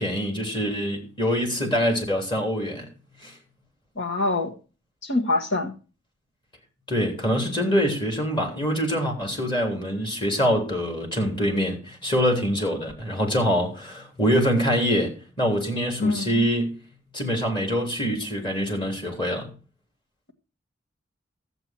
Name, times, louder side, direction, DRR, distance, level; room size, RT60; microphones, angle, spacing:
voice 1, 0.0-2.9 3.2-3.3 6.9-16.8 17.1-19.5, equal, 25° left, 3.3 m, -24 dB
voice 2, 4.0-4.5 5.0-5.7 16.0-16.4, left 2 dB, 65° left, 1.8 m, -25 dB
14.0 x 8.0 x 4.4 m
head